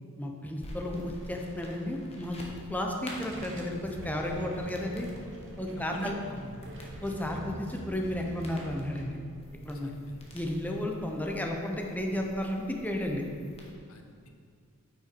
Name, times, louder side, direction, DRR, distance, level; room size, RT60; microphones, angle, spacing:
voice 1, 0.2-2.4 2.7-5.1 5.6-6.1 7.0-9.2 9.6-9.9 10.3-13.2, left 1 dB, 5° left, 1 dB, 0.8 m, -33 dB
sound 1, 0.6-13.7, equal, 30° left, 1.2 m, -49 dB
sound 2, 3.0-9.0, equal, 60° right, 1.3 m, -45 dB
voice 2, 5.8-6.6 7.3-7.5 9.8-10.2 13.9-14.3, left 1 dB, 70° left, 4 dB, 0.8 m, -46 dB
8.8 x 6.0 x 4.6 m, 2.2 s
head